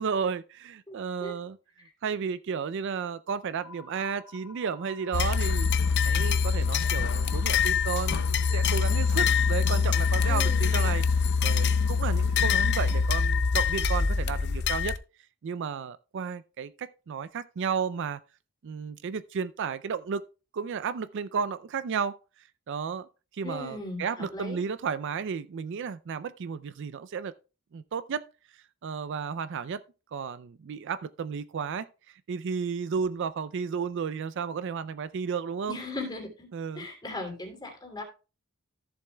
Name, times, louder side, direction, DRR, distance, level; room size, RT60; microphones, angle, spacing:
voice 1, 0.0-1.6 2.0-5.7 6.1-11.0 11.4-15.0 15.4-18.2 18.6-20.2 20.5-22.2 22.7-23.1 23.3-27.3 27.7-28.3 28.8-29.8 30.1-31.9 32.3-35.8 36.5-36.9, right 6 dB, 55° right, 0.4 m, -33 dB
sound 1, 3.6-13.8, left 4 dB, 70° left, 3.0 m, -49 dB
sound 2, 5.1-15.0, left 5 dB, 50° left, 0.5 m, -24 dB
voice 2, 10.3-10.9 23.4-24.6 35.7-36.5 36.7-38.0, left 2 dB, 20° left, 2.6 m, -38 dB
14.0 x 7.1 x 2.2 m
head